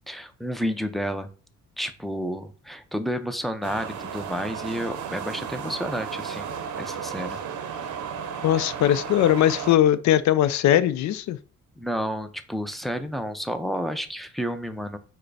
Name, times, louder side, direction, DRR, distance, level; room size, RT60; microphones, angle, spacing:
voice 1, 0.1-1.3 1.8-7.4 8.6-8.7 11.8-15.0, equal, ahead, 0.5 m, -31 dB
sound 1, 3.6-9.8, right 7 dB, 75° right, 0.7 m, -34 dB
voice 2, 8.4-11.4, left 11 dB, 70° left, 0.5 m, -20 dB
4.7 x 2.2 x 4.7 m
cardioid pair, 90°, 30 cm